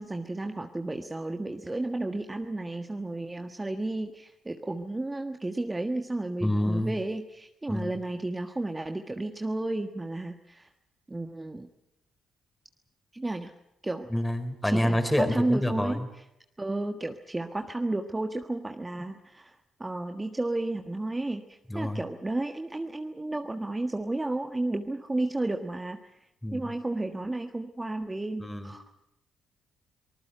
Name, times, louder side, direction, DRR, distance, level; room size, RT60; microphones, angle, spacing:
voice 1, 0.0-10.7 11.1-11.7 13.1-13.5 13.8-14.1 14.6-16.0 16.6-19.5 19.8-21.4 21.7-26.0 26.5-28.8, right 2 dB, 20° right, 6 dB, 1.5 m, -32 dB
voice 2, 6.4-6.9 7.7-7.9 14.1-16.1 21.7-22.0 26.4-26.7 28.4-28.7, left 1 dB, 10° left, 8 dB, 4.4 m, -27 dB
24.0 x 20.0 x 8.0 m, 0.82 s
hypercardioid pair, 45°, 0 cm